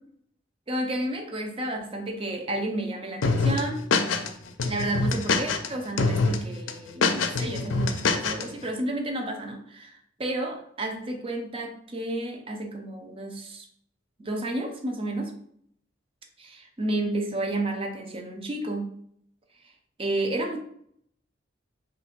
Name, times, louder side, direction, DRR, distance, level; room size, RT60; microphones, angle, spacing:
voice 1, 0.7-3.9 4.6-13.7 14.2-15.3 16.4-18.9 20.0-20.6, right 1 dB, 30° right, 3 dB, 0.6 m, -31 dB
sound 1, 3.2-4.3 4.6-5.7 6.0-6.4 6.7-8.4, left 4 dB, 85° left, 0.5 m, -24 dB
3.2 x 2.6 x 4.4 m, 0.67 s
head